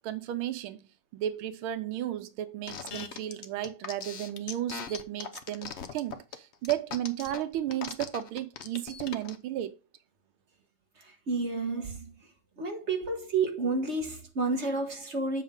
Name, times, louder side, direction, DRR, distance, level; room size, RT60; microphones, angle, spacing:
voice 1, 0.0-9.8, right 12 dB, 85° right, 1.6 m, -34 dB
sound 1, 2.7-9.4, left 6 dB, 55° left, 0.7 m, -40 dB
voice 2, 11.3-12.1 12.6-15.4, right 3 dB, 35° right, 1.4 m, -30 dB
7.7 x 5.5 x 3.7 m
omnidirectional pair, 2.2 m